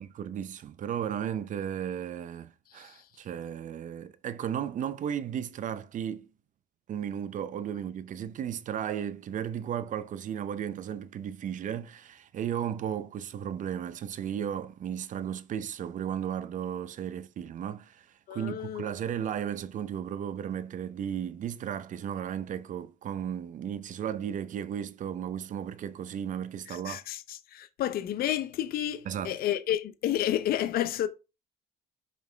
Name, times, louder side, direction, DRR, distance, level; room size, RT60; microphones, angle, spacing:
voice 1, 0.0-6.3 6.9-27.0 29.1-29.4, right 9 dB, 50° right, 0.6 m, -35 dB
voice 2, 18.3-18.9 26.7-31.1, left 11 dB, 60° left, 0.6 m, -30 dB
5.3 x 5.3 x 3.4 m
cardioid pair, 110°, 17 cm